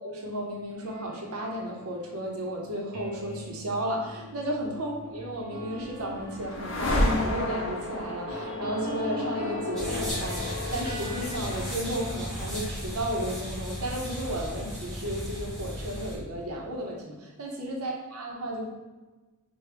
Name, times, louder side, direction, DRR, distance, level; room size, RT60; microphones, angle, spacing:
voice 1, 0.0-18.7, right 1 dB, 85° right, 0 dB, 0.8 m, -34 dB
sound 1, 0.8-13.4 13.8-16.8, left 2 dB, 40° right, 1.1 m, -43 dB
sound 2, 5.3-15.4, left 1 dB, 60° left, 0.7 m, -33 dB
sound 3, 9.8-16.2, equal, ahead, 1.1 m, -35 dB
4.5 x 2.3 x 3.3 m, 1.2 s
head